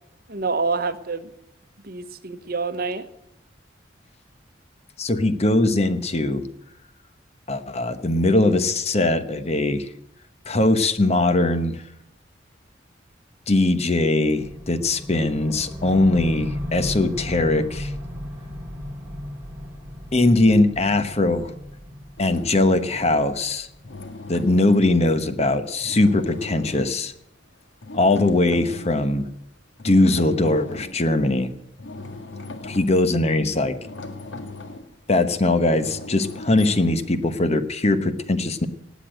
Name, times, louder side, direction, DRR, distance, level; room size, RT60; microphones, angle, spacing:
voice 1, 0.3-1.3 1.8-3.1, right 4 dB, 55° right, 11 dB, 1.1 m, -27 dB
voice 2, 5.0-6.4 7.5-9.9 10.5-11.8 13.5-17.9 20.1-21.5 22.2-23.7 24.3-27.1 27.9-29.3 29.8-31.5 32.6-33.8 35.1-38.7, left 2 dB, 35° left, 11 dB, 1.1 m, -20 dB
sound 1, 14.4-24.5, left 1 dB, 10° right, 3.9 m, -36 dB
sound 2, 22.2-23.2 23.7-25.4 25.8-27.0 27.8-29.1 29.8-31.1 31.6-37.4, left 3 dB, 80° left, 1.8 m, -38 dB
18.5 x 8.4 x 9.0 m, 0.81 s
head